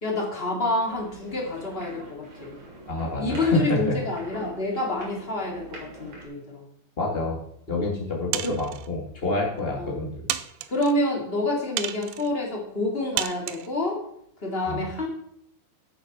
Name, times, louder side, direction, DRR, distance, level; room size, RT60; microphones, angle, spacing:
voice 1, 0.0-2.6 3.2-6.7 7.8-7.9 8.4-8.6 9.7-10.0 10.7-14.0 14.4-15.1, left 2 dB, 25° left, -1 dB, 1.4 m, -28 dB
sound 1, 0.9-6.2, right 2 dB, 45° right, 4.3 m, -45 dB
voice 2, 2.9-3.9 7.0-7.4 7.7-10.3 14.7-14.8, left 2 dB, 80° left, -3 dB, 0.5 m, -27 dB
sound 2, 8.3-8.9 9.6-9.7 10.3-10.9 11.8-12.3 13.2-13.7, right 13 dB, 90° right, 2.2 m, -31 dB
13.0 x 7.3 x 6.0 m, 0.73 s
omnidirectional pair, 5.1 m